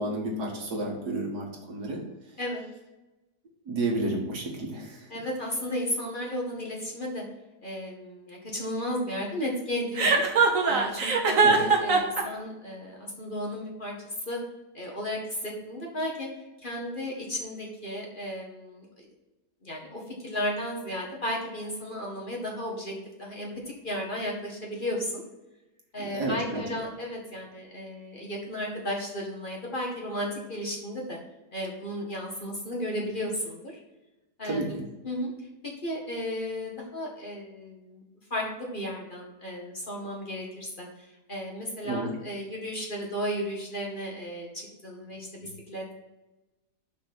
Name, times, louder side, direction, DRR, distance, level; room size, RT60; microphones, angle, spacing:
voice 1, 0.0-2.0 3.7-5.1 11.4-11.6 26.0-26.8 34.4-34.9 41.9-42.1, right 2 dB, 70° right, 0 dB, 2.2 m, -31 dB
voice 2, 5.1-7.2 7.6-10.2 10.6-14.4 14.7-16.3 16.6-18.9 19.6-22.9 23.2-23.5 23.8-25.2 25.9-31.2 31.5-33.8 34.4-35.3 35.8-38.0 38.3-45.8, equal, 30° left, -2 dB, 1.9 m, -34 dB
Chuckle chortle, 10.0-12.2, right 4 dB, 55° right, 1.5 m, -21 dB
6.3 x 6.0 x 6.0 m, 1.0 s
omnidirectional pair, 1.8 m